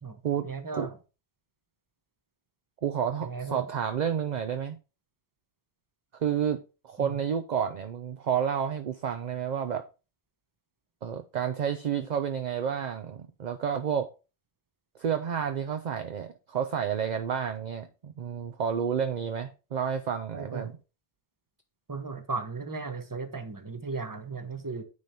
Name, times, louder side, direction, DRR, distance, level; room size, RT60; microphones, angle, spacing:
voice 1, 0.0-1.0 3.2-3.7 7.0-7.2 20.3-20.7 21.9-24.8, right 4 dB, 20° right, 0.9 m, -36 dB
voice 2, 2.8-4.8 6.2-6.6 6.8-9.8 11.0-14.1 15.0-20.7, right 8 dB, 50° right, 0.6 m, -30 dB
9.6 x 3.4 x 4.2 m
omnidirectional pair, 1.1 m